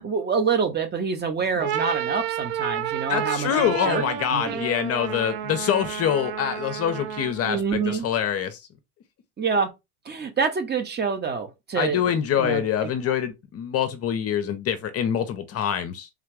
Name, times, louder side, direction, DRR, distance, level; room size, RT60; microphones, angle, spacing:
voice 1, 0.0-3.5 3.9-4.0 4.3-4.6 7.4-8.1 9.4-9.7 10.1-12.0 12.4-12.9, right 5 dB, 20° right, 0.8 m, -26 dB
sound 1, 1.5-7.5, right 9 dB, 60° right, 0.9 m, -31 dB
voice 2, 3.1-8.6 11.7-16.1, left 9 dB, 30° left, 0.7 m, -25 dB
3.7 x 3.3 x 3.3 m
figure-of-eight pair, 75°, 46 cm